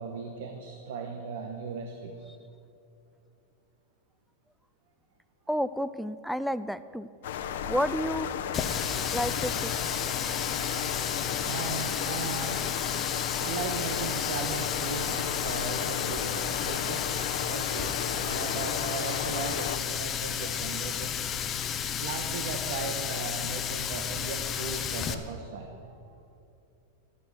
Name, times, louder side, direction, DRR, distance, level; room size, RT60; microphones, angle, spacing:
voice 1, 0.0-2.3 10.1-13.1 13.4-17.1 17.4-21.3 22.0-26.2, right 5 dB, 70° right, 4 dB, 1.3 m, -38 dB
voice 2, 5.5-7.1 7.7-8.3 9.1-9.7, equal, ahead, 15 dB, 0.4 m, -30 dB
sound 1, 7.2-19.8, left 8 dB, 80° left, 1.2 m, -34 dB
Water tap faucet, 8.5-25.1, left 8 dB, 25° left, 0.8 m, -32 dB
13.0 x 11.5 x 6.4 m, 2.7 s
supercardioid pair, 145°, 0 cm